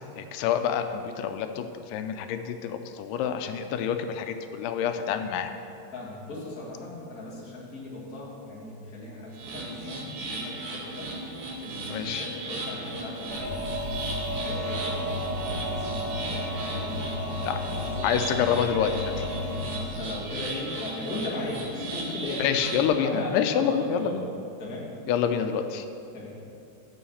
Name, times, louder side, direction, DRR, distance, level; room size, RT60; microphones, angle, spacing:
voice 1, 0.2-5.5 11.9-12.3 17.4-17.6 18.0-19.3 22.4-24.2 25.1-25.9, left 8 dB, 90° left, 8 dB, 2.2 m, -27 dB
voice 2, 5.1-5.4 5.9-13.8 14.3-18.4 19.4-22.5 22.9-24.1 24.6-24.9 26.1-26.3, left 2 dB, 35° left, -6 dB, 1.8 m, -37 dB
sound 1, 9.3-22.9, right 2 dB, 70° right, 2.8 m, -37 dB
sound 2, 13.3-19.8, left 1 dB, 30° right, 0.3 m, -32 dB
7.1 x 6.4 x 7.0 m, 2.6 s
omnidirectional pair, 3.7 m